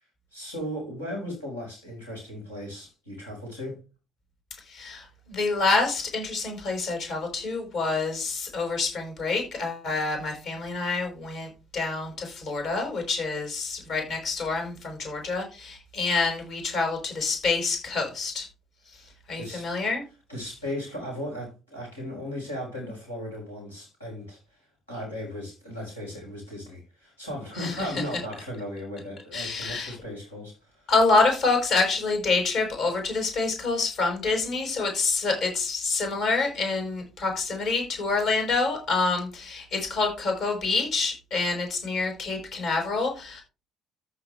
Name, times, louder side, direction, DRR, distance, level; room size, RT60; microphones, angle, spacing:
voice 1, 0.3-3.8 18.9-19.7 20.3-24.4 24.9-30.9, left 1 dB, 90° left, 5.2 m, -36 dB
voice 2, 4.7-18.5 19.3-20.0 27.6-27.9 29.3-30.0 30.9-43.4, left 3 dB, 55° left, 5.3 m, -27 dB
14.0 x 5.8 x 3.3 m
figure-of-eight pair, 50°, 0 cm